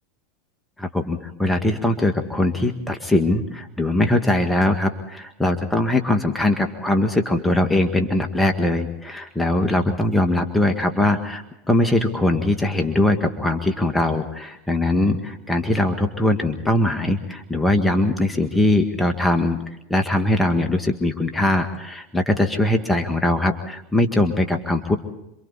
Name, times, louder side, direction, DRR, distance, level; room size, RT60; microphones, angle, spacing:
voice 1, 0.8-19.6 19.9-25.0, left 1 dB, 10° left, 5 dB, 1.9 m, -21 dB
27.0 x 25.0 x 4.2 m, 0.83 s
hypercardioid pair, 95°, 0 cm